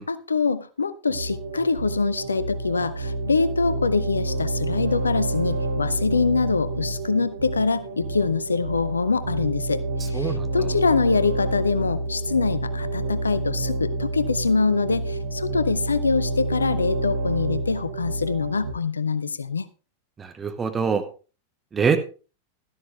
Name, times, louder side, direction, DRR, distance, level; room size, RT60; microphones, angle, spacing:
voice 1, 0.1-19.7, left 4 dB, 75° left, 15 dB, 0.6 m, -24 dB
sound 1, 1.1-18.7, right 2 dB, 75° right, 2.1 m, -28 dB
voice 2, 10.1-10.5 20.2-21.0 21.7-22.0, right 6 dB, 20° right, 7 dB, 1.5 m, -24 dB
12.5 x 11.0 x 3.4 m, 0.35 s
figure-of-eight pair, 90°, 0 cm